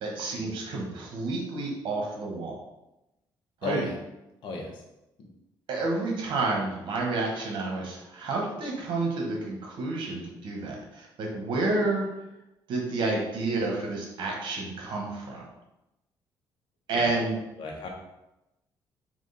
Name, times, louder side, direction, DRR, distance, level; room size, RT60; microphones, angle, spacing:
voice 1, 0.0-2.6 3.6-3.9 5.7-12.1 12.7-15.4 16.9-17.4, right 3 dB, 70° right, 0 dB, 1.2 m, -30 dB
voice 2, 3.6-4.0 4.4-4.8 5.2-5.3 16.9-17.2 17.6-17.9, left 2 dB, 70° left, 0 dB, 1.0 m, -33 dB
3.7 x 2.9 x 4.1 m, 0.93 s
cardioid pair, 95°, 8 cm